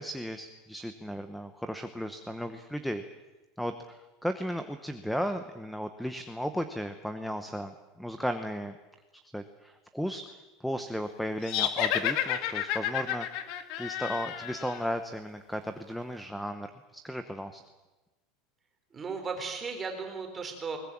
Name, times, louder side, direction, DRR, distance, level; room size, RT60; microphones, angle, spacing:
voice 1, 0.0-3.0 3.6-8.7 9.3-13.3 13.8-16.7 16.9-17.6, equal, ahead, 9 dB, 1.0 m, -35 dB
sound 1, 11.4-14.8, left 11 dB, 50° left, 1.9 m, -31 dB
voice 2, 18.9-20.8, right 5 dB, 15° right, 4 dB, 3.9 m, -36 dB
21.5 x 19.5 x 8.6 m, 1.1 s
supercardioid pair, 165°, 0 cm